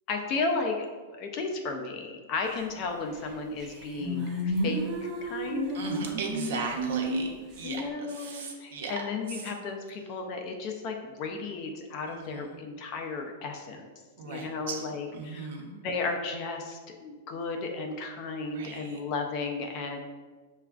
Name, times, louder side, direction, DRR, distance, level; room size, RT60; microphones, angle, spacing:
voice 1, 0.1-5.8 7.6-13.9 14.2-15.5 15.8-20.0, left 4 dB, 30° left, 2 dB, 0.4 m, -34 dB
sound 1, 3.2-3.3 3.6-7.6, right 1 dB, 30° right, 0.6 m, -31 dB
voice 2, 5.7-9.0 12.1-12.5 14.2-14.8 15.1-15.8 18.5-19.0, right 3 dB, 70° right, 1 dB, 0.7 m, -37 dB
6.6 x 2.4 x 2.3 m, 1.4 s
supercardioid pair, 170°, 0 cm